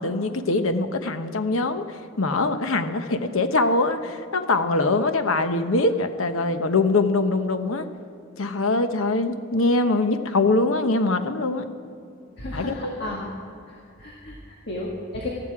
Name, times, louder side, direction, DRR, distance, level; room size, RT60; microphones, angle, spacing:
voice 1, 0.0-7.9 8.4-11.7 12.5-13.2, left 2 dB, 80° left, 8 dB, 1.0 m, -23 dB
voice 2, 12.4-13.3 13.7-15.3, left 1 dB, 50° left, -3 dB, 1.9 m, -34 dB
19.0 x 14.0 x 4.8 m, 2.6 s
head